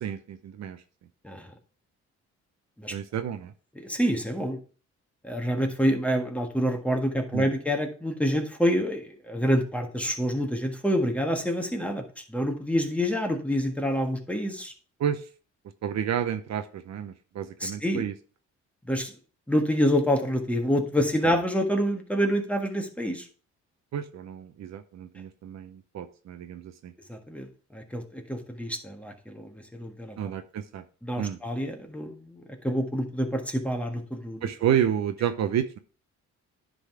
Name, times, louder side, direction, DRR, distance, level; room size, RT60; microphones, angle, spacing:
voice 1, 0.0-0.8 2.9-3.5 7.3-7.5 15.0-15.2 15.8-18.1 23.9-26.9 30.2-30.8 31.2-31.4 34.4-35.8, right 9 dB, 60° right, 10 dB, 0.8 m, -30 dB
voice 2, 3.7-4.6 5.2-14.7 17.6-18.0 18.8-19.1 19.5-23.3 27.1-27.5 27.7-30.2 31.0-34.5, equal, 5° left, 3 dB, 1.6 m, -27 dB
10.0 x 3.9 x 4.8 m, 0.38 s
cardioid pair, 90°, 30 cm